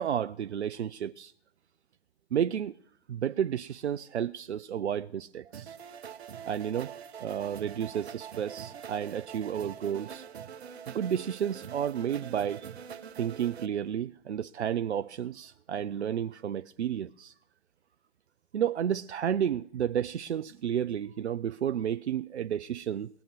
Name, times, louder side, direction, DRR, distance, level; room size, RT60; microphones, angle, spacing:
voice 1, 0.0-1.3 2.3-2.7 3.1-5.8 6.5-6.9 7.2-10.3 10.9-12.7 13.1-17.3 18.5-23.1, right 9 dB, 85° right, 0.5 m, -31 dB
sound 1, 5.5-13.7, right 8 dB, 70° right, 1.1 m, -44 dB
18.5 x 7.1 x 9.3 m
hypercardioid pair, 120°, 33 cm